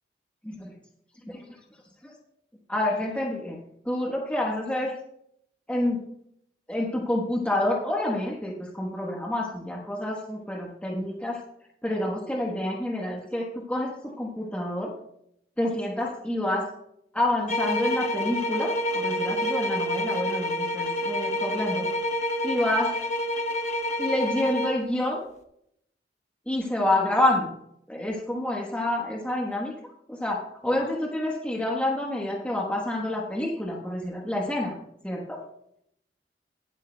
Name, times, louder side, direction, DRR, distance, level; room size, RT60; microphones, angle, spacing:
voice 1, 2.7-3.6 3.8-4.9 5.7-6.0 6.7-11.4 11.8-14.9 15.6-16.7 17.1-21.9 22.4-22.9 24.0-25.2 26.5-27.5 27.9-29.7 30.1-34.8 35.0-35.4, left 1 dB, 5° left, -1 dB, 1.2 m, -28 dB
sound 1, 17.5-24.8, left 1 dB, 40° left, 1.2 m, -28 dB
20.5 x 8.1 x 2.3 m, 0.75 s
head